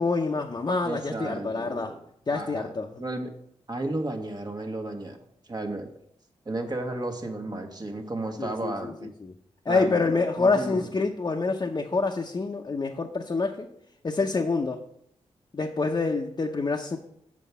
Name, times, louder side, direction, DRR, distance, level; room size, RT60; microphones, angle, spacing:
voice 1, 0.0-1.9 2.3-3.0 8.4-8.9 9.2-9.3 9.7-13.7 14.0-14.8 15.5-17.0, left 3 dB, 40° left, 1 dB, 0.8 m, -27 dB
voice 2, 0.8-2.0 2.3-2.7 3.0-3.3 3.7-5.2 5.5-5.9 6.4-9.1 9.7-10.1 10.4-10.9, right 2 dB, 35° right, 4 dB, 1.3 m, -33 dB
7.4 x 4.6 x 6.9 m, 0.72 s
cardioid pair, 70°, 11 cm